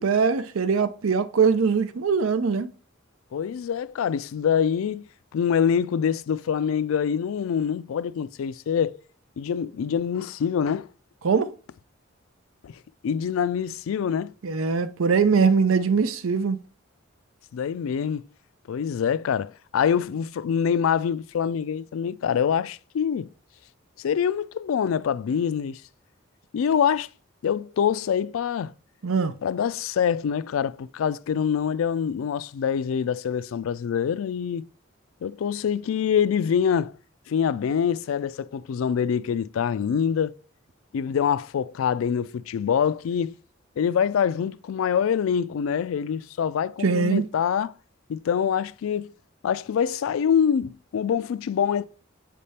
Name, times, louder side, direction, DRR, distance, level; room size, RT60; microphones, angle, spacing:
voice 1, 0.0-2.7 11.2-11.5 14.4-16.6 29.0-29.3 46.8-47.3, right 5 dB, 90° right, 0.5 m, -22 dB
voice 2, 3.3-5.1 5.3-9.0 9.4-10.9 12.6-12.7 13.0-14.3 17.5-18.2 18.7-23.3 24.0-25.8 26.5-27.1 27.4-28.7 29.4-34.7 35.2-36.9 37.3-40.3 40.9-43.4 43.8-47.7 48.1-49.1 49.4-51.8, left 7 dB, 85° left, 0.3 m, -25 dB
7.4 x 3.4 x 4.2 m
head